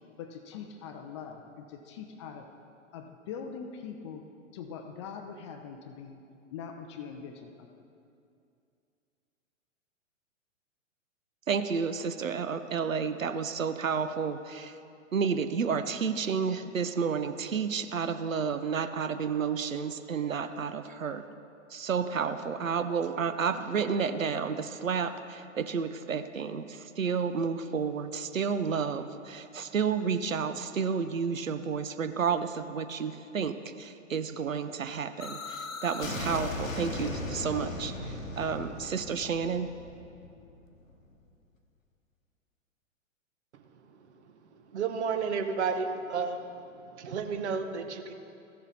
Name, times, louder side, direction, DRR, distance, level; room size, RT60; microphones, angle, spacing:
voice 1, 0.2-2.5 2.9-4.2 4.5-6.2 6.5-7.7, left 6 dB, 25° left, 5 dB, 0.4 m, -42 dB
voice 2, 11.5-14.8 15.1-21.2 21.7-39.7, right 6 dB, 85° right, 10 dB, 0.6 m, -31 dB
sound 1, 35.2-40.9, left 2 dB, 90° left, 1.0 m, -38 dB
voice 3, 44.7-46.4 47.0-48.1, right 5 dB, 60° right, 7 dB, 1.0 m, -31 dB
15.0 x 7.0 x 4.1 m, 2.5 s
figure-of-eight pair, 110°, 39 cm